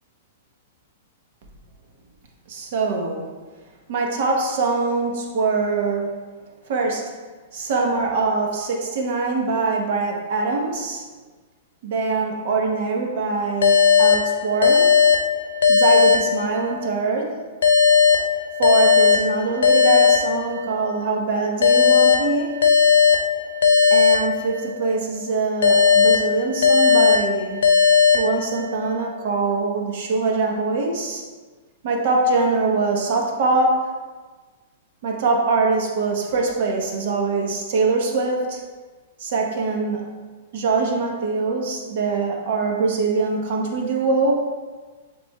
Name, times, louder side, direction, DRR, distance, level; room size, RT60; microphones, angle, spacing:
voice 1, 2.5-3.3 3.9-6.2 6.7-7.1 7.5-11.0 11.8-14.9 15.7-17.4 18.6-22.6 23.9-27.6 28.1-31.2 31.8-33.9 35.0-38.6 39.2-40.1 40.5-44.5, right 3 dB, 60° right, 1 dB, 0.9 m, -23 dB
sound 1, 13.6-17.0 17.6-20.9 21.6-25.0 25.6-28.9, left 6 dB, 85° left, 0.6 m, -17 dB
6.9 x 3.4 x 2.2 m, 1.4 s
hypercardioid pair, 140°, 0 cm